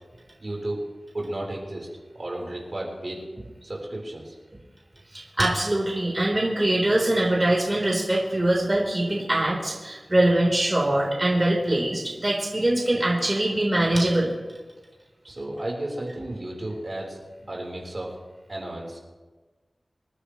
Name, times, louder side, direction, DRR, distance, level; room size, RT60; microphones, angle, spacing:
voice 1, 0.4-0.8 1.1-1.9 2.1-4.6 15.2-18.2 18.5-19.0, right 1 dB, 50° right, -2 dB, 3.9 m, -33 dB
voice 2, 5.1-14.3, right 1 dB, 35° right, -2 dB, 3.7 m, -23 dB
27.0 x 9.9 x 3.1 m, 1.3 s
wide cardioid pair, 55°, 0 cm